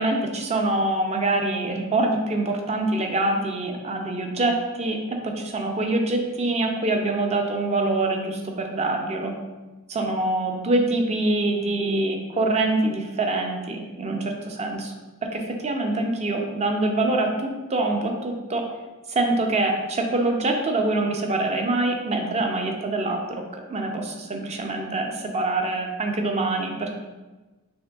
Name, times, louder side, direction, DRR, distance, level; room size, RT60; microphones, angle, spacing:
voice 1, 0.0-9.3 9.9-14.9 15.2-18.6 19.1-26.9, right 2 dB, 30° right, 3 dB, 0.4 m, -25 dB
6.2 x 2.6 x 2.3 m, 1.2 s
head